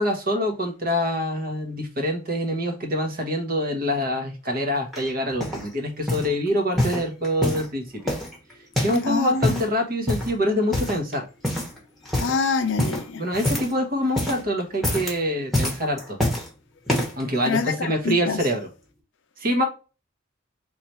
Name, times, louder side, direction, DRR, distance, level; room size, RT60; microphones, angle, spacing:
voice 1, 0.0-8.1 8.8-11.2 13.2-16.2 17.2-18.6 19.4-19.6, equal, 45° right, 1.1 m, -25 dB
sound 1, 4.9-5.7 6.1-6.3 6.7-7.7 8.1-9.1 9.3-9.7 10.1-10.4 10.7-11.1 11.4-11.8 12.0-12.4 12.8-13.8 14.0-14.4 14.7-15.2 15.5-16.5 16.9-17.2 17.9-18.0, left 1 dB, ahead, 1.1 m, -26 dB
voice 2, 9.0-9.6 12.2-13.2 17.4-18.4, left 4 dB, 65° left, 0.6 m, -25 dB
3.9 x 3.2 x 2.9 m
head